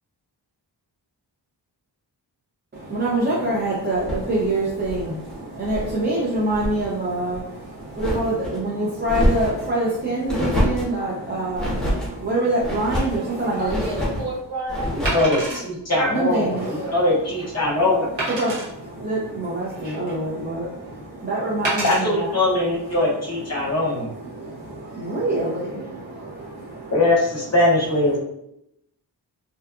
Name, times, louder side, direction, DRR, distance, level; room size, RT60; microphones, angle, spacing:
voice 1, 2.7-13.8 16.1-16.9 18.3-22.3 23.5-23.7 24.2-26.9, right 2 dB, 25° right, -6 dB, 0.4 m, -26 dB
sound 1, 3.9-6.0 6.3-6.9 7.3-8.6 9.0-9.7 10.3-11.0 11.5-12.1 12.6-13.2 13.6-14.3 14.7-15.3, equal, ahead, 0.8 m, -26 dB
Wood, 13.4-13.6 15.0-15.6 16.3-16.4 16.9-17.0 18.2-18.7 19.4-20.2 21.6-22.0 22.7-22.9, right 2 dB, 85° right, 1.1 m, -27 dB
voice 2, 13.6-15.6 16.5-17.0, right 1 dB, 65° right, -6 dB, 1.1 m, -31 dB
voice 3, 15.1-18.1 21.8-24.1 26.9-28.2, left 2 dB, 35° left, -5 dB, 0.8 m, -21 dB
2.7 x 2.2 x 2.3 m, 0.79 s
wide cardioid pair, 130°, 42 cm